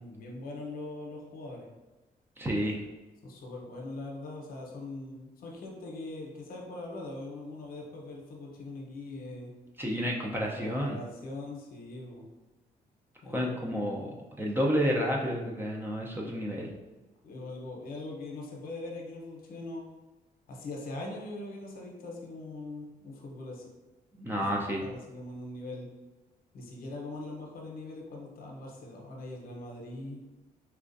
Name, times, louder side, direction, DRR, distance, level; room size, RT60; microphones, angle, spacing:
voice 1, 0.0-1.7 3.2-9.5 10.4-12.3 13.2-13.8 16.2-16.5 17.2-19.8 20.5-23.7 24.4-24.5 24.8-25.9 26.5-30.2, left 2 dB, 70° left, -1 dB, 0.8 m, -41 dB
voice 2, 2.4-2.8 9.8-11.0 13.3-16.7 24.1-24.8, equal, 15° right, -2 dB, 0.6 m, -30 dB
4.3 x 2.4 x 2.6 m, 1.1 s
cardioid pair, 95°, 16 cm